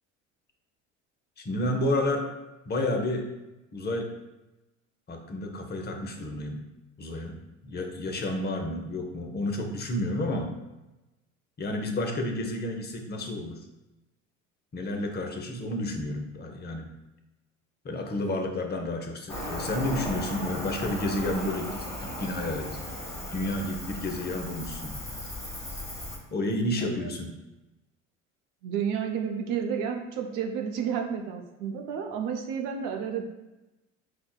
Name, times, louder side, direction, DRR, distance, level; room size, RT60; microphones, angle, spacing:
voice 1, 1.4-2.3 2.7-3.3 3.7-4.1 5.1-6.6 7.0-10.5 11.6-13.6 14.7-16.9 17.8-22.8 23.3-25.0 26.3-27.3, left 1 dB, 25° left, 3 dB, 0.7 m, -31 dB
Cricket, 19.3-26.2, left 1 dB, 10° left, 1.2 m, -36 dB
voice 2, 26.8-27.1 28.6-33.2, right 7 dB, 55° right, 2 dB, 0.6 m, -31 dB
5.6 x 2.2 x 2.3 m, 1.0 s
hypercardioid pair, 70°, 39 cm